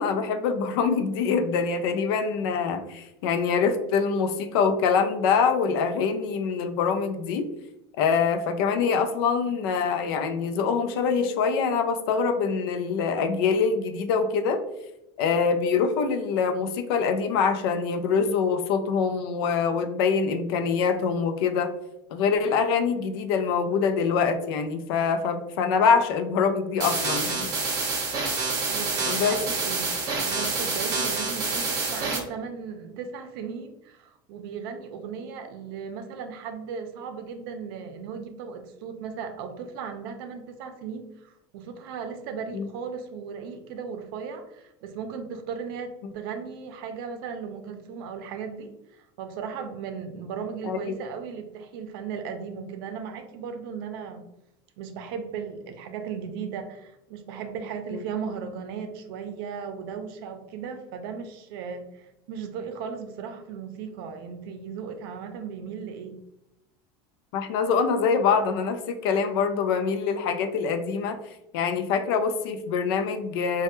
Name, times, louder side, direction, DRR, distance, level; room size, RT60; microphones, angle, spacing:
voice 1, 0.0-7.6 8.0-14.6 15.2-21.7 22.1-27.5 29.1-29.4 42.5-42.7 50.6-50.9 57.9-58.0 67.3-71.2 71.5-73.6, left 5 dB, 80° left, 8 dB, 0.4 m, -24 dB
sound 1, 26.8-32.2, right 4 dB, 35° right, 0.8 m, -27 dB
voice 2, 28.7-54.3 54.8-66.2, right 6 dB, 75° right, 7 dB, 0.5 m, -36 dB
3.2 x 2.2 x 2.9 m, 0.88 s
cardioid pair, 155°, 12 cm